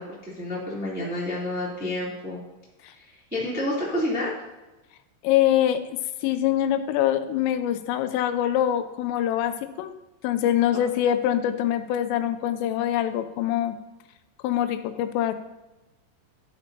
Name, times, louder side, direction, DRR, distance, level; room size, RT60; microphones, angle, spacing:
voice 1, 0.0-2.4 2.9-4.3, left 1 dB, 5° right, -7 dB, 1.3 m, -29 dB
voice 2, 5.2-5.8 6.2-9.9 10.2-13.8 14.4-15.3, left 11 dB, 85° left, 10 dB, 3.2 m, -24 dB
11.0 x 8.8 x 2.8 m, 1.0 s
omnidirectional pair, 5.7 m